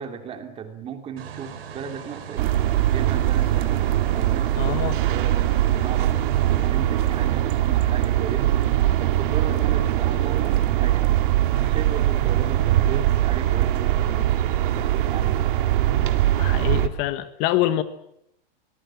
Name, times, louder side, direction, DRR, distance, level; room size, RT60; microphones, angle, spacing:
voice 1, 0.0-3.9 4.1-6.1 6.5-8.6 9.0-11.2 11.6-14.4 14.7-15.5, right 7 dB, 20° right, 6 dB, 2.9 m, -36 dB
sound 1, 1.2-6.7, right 7 dB, 90° right, 4.6 m, -39 dB
sound 2, 2.4-16.9, right 13 dB, 60° right, 2.5 m, -21 dB
voice 2, 4.6-4.9 16.4-17.8, left 14 dB, 35° left, 11 dB, 1.4 m, -25 dB
25.5 x 20.0 x 7.5 m, 0.77 s
supercardioid pair, 160°, 29 cm